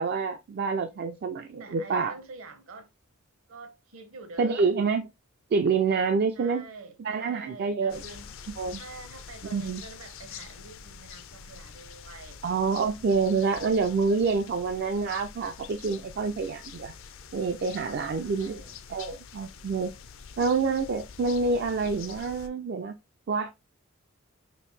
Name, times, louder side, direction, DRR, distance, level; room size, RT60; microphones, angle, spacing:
voice 1, 0.0-2.2 4.4-5.0 5.5-6.7 7.0-8.0 8.6-8.8 9.4-9.8 12.4-16.9 17.3-18.6 18.9-19.9 20.4-23.0 23.3-23.5, right 4 dB, 45° right, 0.3 m, -27 dB
voice 2, 1.6-2.9 3.5-4.7 6.3-8.3 8.7-12.4 18.1-18.8, right 3 dB, 65° right, 0.9 m, -46 dB
sound 1, 7.9-22.5, left 6 dB, 60° left, 0.5 m, -46 dB
5.1 x 2.6 x 3.1 m
head